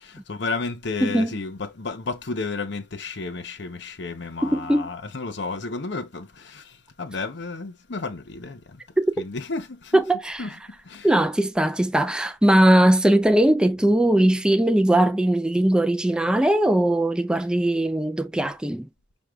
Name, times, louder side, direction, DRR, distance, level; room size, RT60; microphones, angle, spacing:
voice 1, 0.0-8.8 9.2-10.0 10.4-10.5 10.8-11.1, left 3 dB, 65° left, 0.9 m, -32 dB
voice 2, 1.0-1.4 4.4-4.9 9.0-9.1 9.9-10.5 11.0-18.9, right 1 dB, 5° right, 0.3 m, -20 dB
6.4 x 2.3 x 3.4 m
head